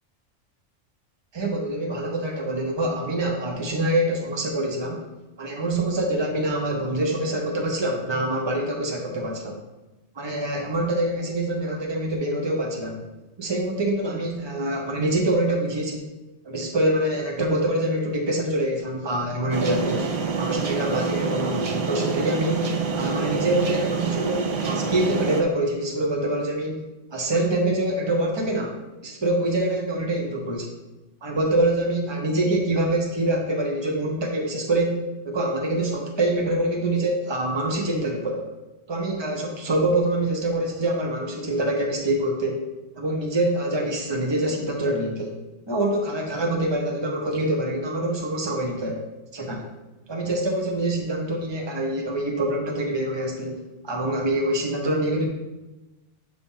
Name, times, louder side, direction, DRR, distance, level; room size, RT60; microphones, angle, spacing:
voice 1, 1.3-5.0 5.4-9.6 10.1-13.1 13.4-16.1 16.4-20.1 20.4-28.8 29.0-30.7 31.2-38.5 38.9-42.6 43.0-45.4 45.7-49.0 49.3-49.7 50.1-55.3, right 1 dB, 25° right, 0 dB, 0.9 m, -25 dB
sound 1, 19.5-25.4, right 4 dB, 45° right, 0.4 m, -27 dB
7.9 x 2.9 x 5.5 m, 1.1 s
omnidirectional pair, 1.3 m